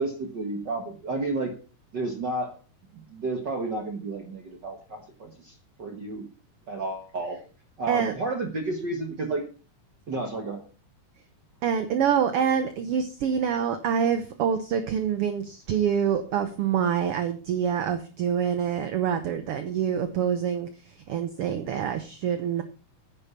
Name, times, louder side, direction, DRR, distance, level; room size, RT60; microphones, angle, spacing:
voice 1, 0.0-1.5 1.9-2.5 2.9-6.3 6.7-7.4 7.8-9.5 10.1-10.6, right 2 dB, 45° right, 4 dB, 1.5 m, -31 dB
voice 2, 11.6-20.7 21.1-22.6, right 8 dB, 70° right, 9 dB, 1.4 m, -26 dB
9.7 x 8.3 x 5.6 m, 0.36 s
omnidirectional pair, 3.6 m